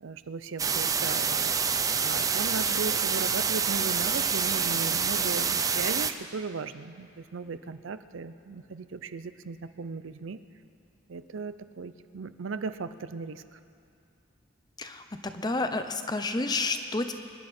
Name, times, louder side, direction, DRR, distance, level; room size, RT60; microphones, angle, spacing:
voice 1, 0.0-1.5 2.0-10.4 11.1-13.6, right 4 dB, 85° right, 12 dB, 0.5 m, -37 dB
sound 1, 0.6-6.1, right 6 dB, 20° right, 0.4 m, -27 dB
voice 2, 14.8-17.1, left 3 dB, 20° left, 8 dB, 0.7 m, -30 dB
25.0 x 11.0 x 4.3 m, 2.5 s
head